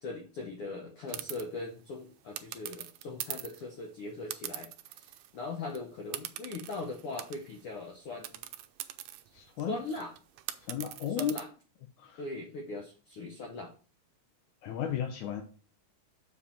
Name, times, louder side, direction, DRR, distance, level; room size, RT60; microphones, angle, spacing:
voice 1, 0.0-8.5 9.6-10.2 11.1-11.5 12.2-13.7 14.8-14.9, left 3 dB, 65° left, 1.5 m, -40 dB
sound 1, 1.1-1.4 2.4-3.6 4.3-5.4 5.7-5.8 6.1-7.6 8.2-11.4, right 13 dB, 80° right, 1.6 m, -42 dB
voice 2, 9.4-9.8 10.7-11.3 12.0-12.2 14.6-15.4, left 9 dB, 80° left, 2.2 m, -34 dB
7.1 x 4.7 x 4.4 m
omnidirectional pair, 3.4 m